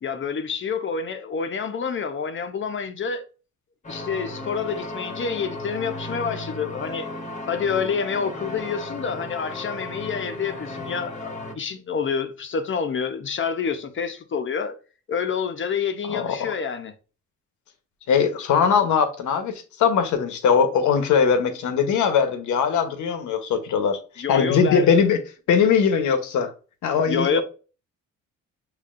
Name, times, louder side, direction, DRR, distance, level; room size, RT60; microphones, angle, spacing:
voice 1, 0.0-3.3 3.9-7.1 7.5-14.7 15.1-16.9 24.2-25.0 27.0-27.4, left 6 dB, 40° left, 0.8 m, -28 dB
sound 1, 3.8-11.5, left 2 dB, 25° left, 1.1 m, -35 dB
voice 2, 16.1-16.5 18.1-25.2 25.5-26.5 26.8-27.4, left 6 dB, 75° left, 1.0 m, -21 dB
6.6 x 3.1 x 2.5 m
cardioid pair, 90°, 30 cm